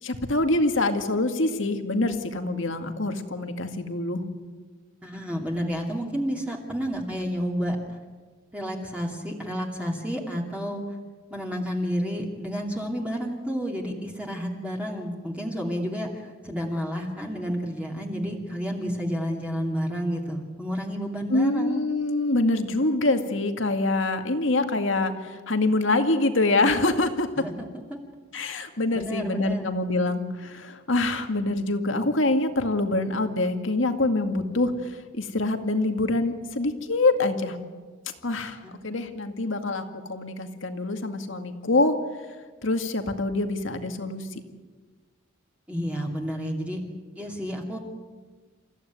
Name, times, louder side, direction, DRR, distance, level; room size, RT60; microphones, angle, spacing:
voice 1, 0.0-4.2 21.3-27.3 28.3-37.6 38.2-42.0 42.6-44.3, left 2 dB, 70° left, 6 dB, 2.2 m, -25 dB
voice 2, 5.0-7.8 8.5-10.8 11.3-21.8 27.4-27.5 27.9-28.0 28.9-29.7 38.6-38.8 45.7-46.8 47.1-47.8, equal, 5° right, -1 dB, 2.6 m, -30 dB
29.0 x 15.0 x 9.5 m, 1.4 s
head